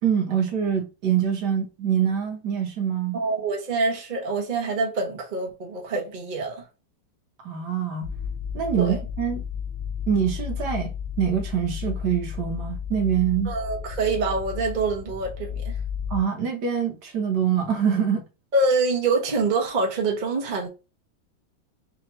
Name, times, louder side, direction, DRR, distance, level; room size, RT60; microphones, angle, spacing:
voice 1, 0.0-3.2 7.4-8.1 8.5-9.4 10.1-13.5 16.1-18.2, right 8 dB, 65° right, 1.4 m, -25 dB
voice 2, 3.1-6.7 8.8-9.0 13.4-15.7 18.5-20.7, right 3 dB, 30° right, 1.0 m, -25 dB
sound 1, 8.0-16.2, left 7 dB, 80° left, 0.6 m, -33 dB
4.6 x 2.9 x 3.0 m
omnidirectional pair, 2.1 m